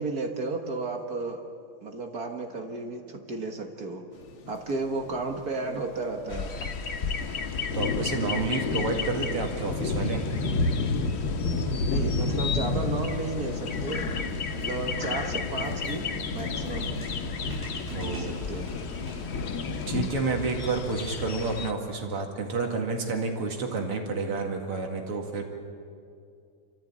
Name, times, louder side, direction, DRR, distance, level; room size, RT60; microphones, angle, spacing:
voice 1, 0.0-1.4 1.8-4.0 4.5-6.5 11.9-14.1 14.5-16.9 18.0-18.7, right 3 dB, 45° right, 4 dB, 1.8 m, -33 dB
sound 1, 4.1-4.5 5.0-20.0, left 3 dB, 85° left, 2.3 m, -32 dB
sound 2, 6.3-21.7, left 5 dB, 55° left, 0.7 m, -35 dB
voice 2, 7.7-10.2 17.9-18.3 19.9-25.4, right 3 dB, 85° right, 2 dB, 3.1 m, -30 dB
sound 3, 13.7-19.4, right 1 dB, 5° right, 6.8 m, -45 dB
27.5 x 14.0 x 8.7 m, 2.4 s
omnidirectional pair, 2.4 m